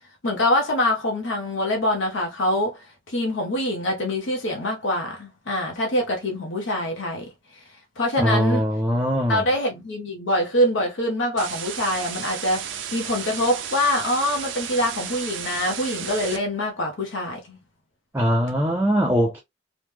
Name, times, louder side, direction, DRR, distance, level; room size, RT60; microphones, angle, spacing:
voice 1, 0.2-7.3 8.0-8.6 9.3-17.6, left 1 dB, 80° left, 0.8 m, -24 dB
voice 2, 8.2-9.4 18.1-19.4, equal, 10° right, 0.4 m, -21 dB
sound 1, 11.4-16.4, right 8 dB, 75° right, 0.5 m, -33 dB
3.0 x 2.1 x 3.3 m
head